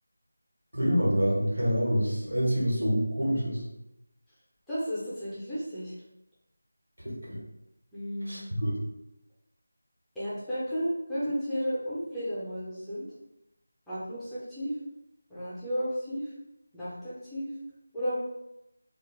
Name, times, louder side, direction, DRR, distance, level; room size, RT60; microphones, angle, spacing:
voice 1, 0.7-3.6 7.0-7.4 8.2-8.7, equal, 85° right, -4 dB, 1.2 m, -27 dB
voice 2, 4.7-5.9 7.9-8.5 10.2-13.0 13.9-14.7 15.3-16.2 16.7-17.5 17.9-18.1, equal, ahead, -13 dB, 0.5 m, -33 dB
2.2 x 2.1 x 3.1 m, 0.88 s
figure-of-eight pair, 175°, 0 cm